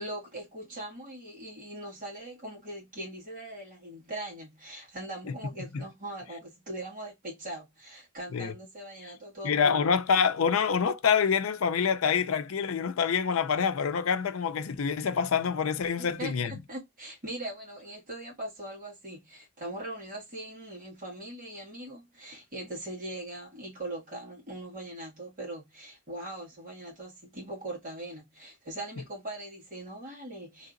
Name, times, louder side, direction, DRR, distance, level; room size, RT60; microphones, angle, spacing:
voice 1, 0.0-10.0 16.0-30.7, right 1 dB, 40° right, 1.9 m, -41 dB
voice 2, 9.4-16.6, left 6 dB, 80° left, 0.5 m, -26 dB
3.2 x 2.9 x 2.5 m
head